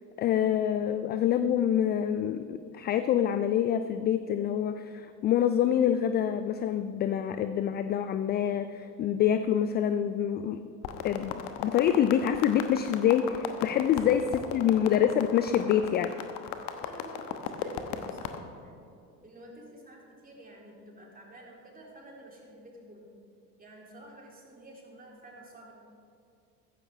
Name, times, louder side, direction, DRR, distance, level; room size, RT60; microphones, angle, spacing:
voice 1, 0.2-10.6 11.0-14.2 14.5-16.1, left 9 dB, 25° left, 10 dB, 0.3 m, -26 dB
sound 1, 10.8-18.4, left 9 dB, 55° left, 1.2 m, -36 dB
voice 2, 16.7-18.8 19.2-23.2 23.6-25.7, right 1 dB, 20° right, -2 dB, 3.5 m, -50 dB
15.0 x 14.5 x 3.3 m, 2.5 s
figure-of-eight pair, 65°, 47 cm